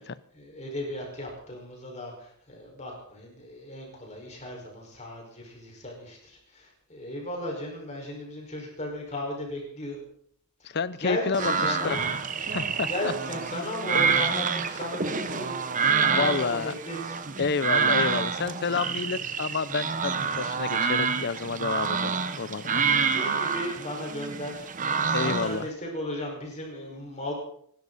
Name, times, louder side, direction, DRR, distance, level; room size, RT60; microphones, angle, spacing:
voice 1, 0.3-10.0 10.6-10.8 11.0-12.1 12.9-15.5 16.0-17.2 23.1-24.7 25.2-27.3, left 1 dB, 30° left, 0 dB, 5.2 m, -35 dB
voice 2, 10.6-12.0 12.5-13.1 16.2-16.7 17.4-22.8 25.1-25.7, left 5 dB, 50° left, 17 dB, 0.7 m, -29 dB
sound 1, 11.3-25.6, right 5 dB, 35° right, 1.0 m, -27 dB
26.5 x 12.5 x 4.2 m, 0.66 s
head